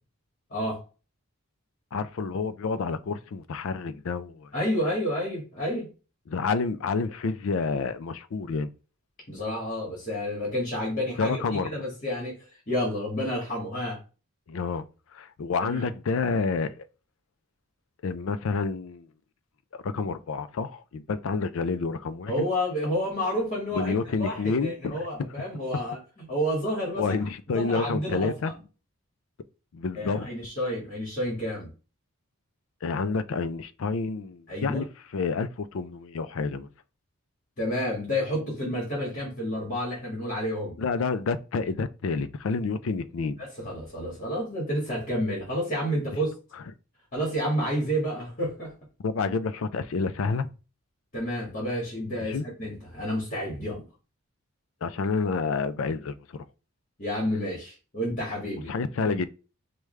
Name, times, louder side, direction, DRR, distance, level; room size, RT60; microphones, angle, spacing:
voice 1, 0.5-0.8 4.5-5.9 9.3-11.4 11.7-12.4 12.7-14.0 15.6-15.9 22.3-23.9 24.2-27.1 27.5-28.6 29.9-31.7 34.5-34.8 37.6-40.7 43.4-46.3 47.1-48.7 51.1-53.8 57.0-58.7 59.0-59.2, equal, 35° left, 1.5 m, -30 dB
voice 2, 1.9-4.5 6.3-8.7 11.2-11.7 14.5-14.8 15.1-16.7 18.0-19.1 19.7-22.5 23.7-25.1 27.0-28.5 29.7-30.3 32.8-34.9 35.1-36.7 40.8-43.4 49.0-50.5 52.2-52.4 54.8-56.5 58.7-59.2, left 4 dB, 65° left, 0.4 m, -29 dB
4.8 x 2.2 x 3.2 m
head